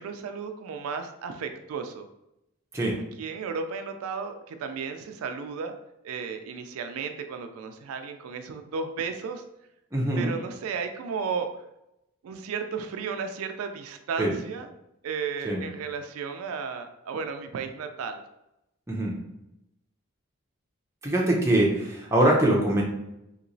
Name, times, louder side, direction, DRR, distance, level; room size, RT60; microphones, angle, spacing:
voice 1, 0.0-2.1 3.2-5.7 6.0-9.4 10.2-11.6 12.2-14.7 15.0-18.2, right 5 dB, 90° right, 6 dB, 0.3 m, -34 dB
voice 2, 9.9-10.3 14.2-14.3 15.4-15.6 18.9-19.2 21.0-22.8, right 1 dB, 15° right, -3 dB, 0.5 m, -23 dB
2.9 x 2.8 x 2.6 m, 0.87 s
head